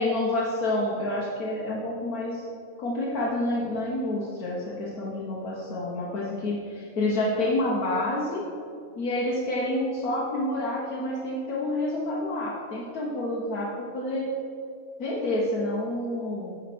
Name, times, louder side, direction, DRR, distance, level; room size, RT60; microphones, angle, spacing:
voice 1, 0.0-2.5 2.8-8.5 9.0-14.3 15.0-16.5, left 1 dB, 90° left, -6 dB, 1.6 m, -28 dB
9.4 x 4.7 x 6.0 m, 2.4 s
omnidirectional pair, 1.5 m